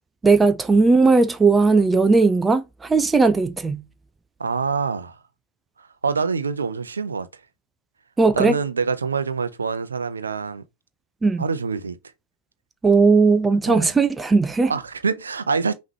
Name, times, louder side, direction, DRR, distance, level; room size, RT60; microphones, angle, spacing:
voice 1, 0.2-3.8 8.2-8.6 11.2-11.4 12.8-14.7, right 4 dB, 10° right, 0.5 m, -17 dB
voice 2, 4.4-5.2 5.8-7.4 8.3-10.6 11.4-12.0 13.7-13.9 14.7-15.7, right 5 dB, 75° right, 0.6 m, -25 dB
5.7 x 3.1 x 2.8 m
figure-of-eight pair, 90°, 0 cm